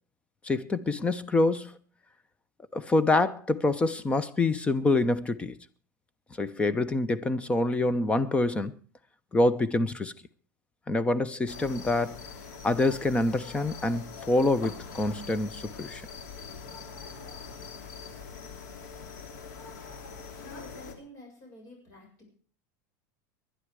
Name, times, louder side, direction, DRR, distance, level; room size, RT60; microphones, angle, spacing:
voice 1, 0.4-1.7 2.7-5.6 6.4-8.8 9.3-10.1 10.9-12.2 12.6-16.0, left 2 dB, 10° left, 0.8 m, -26 dB
sound 1, 11.5-20.9, left 5 dB, 85° left, 3.2 m, -43 dB
voice 2, 20.1-22.3, equal, 35° left, 7.1 m, -50 dB
20.0 x 11.5 x 4.9 m
supercardioid pair, 145°, 9 cm